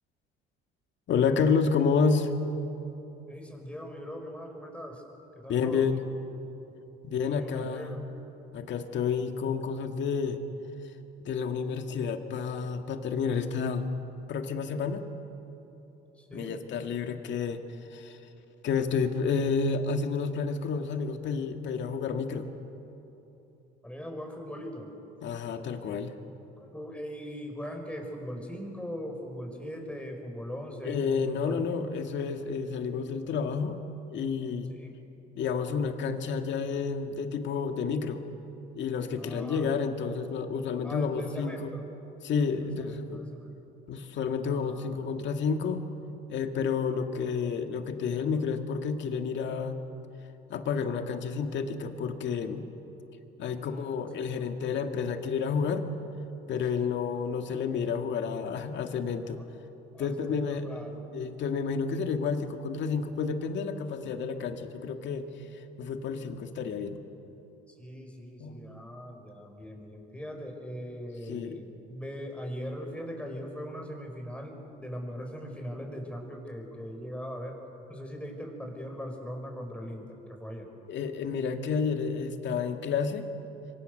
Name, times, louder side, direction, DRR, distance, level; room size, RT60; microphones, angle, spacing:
voice 1, 1.1-2.3 5.5-6.0 7.0-8.0 8.5-10.4 11.2-13.9 14.3-15.0 16.3-17.6 17.9-18.2 18.6-22.5 25.2-26.1 30.8-33.8 34.1-34.7 35.4-38.2 38.7-41.7 42.2-43.3 43.9-45.8 46.3-49.8 50.5-52.7 53.4-55.9 56.5-59.4 60.0-60.7 61.1-65.3 65.5-67.0 68.4-68.8 71.3-71.6 80.9-83.3, left 5 dB, 60° left, 6 dB, 2.0 m, -30 dB
voice 2, 3.3-5.0 5.4-5.9 7.1-8.0 16.1-16.6 23.8-24.9 25.4-26.0 26.6-31.7 34.8-34.9 39.1-39.7 40.8-41.8 42.6-43.6 44.4-45.0 53.4-54.6 56.7-56.9 59.3-59.5 59.9-61.0 67.7-77.6 77.9-80.1 80.4-80.7, equal, 5° left, 2 dB, 5.6 m, -40 dB
27.0 x 23.5 x 6.8 m, 3.0 s
supercardioid pair, 90°, 21 cm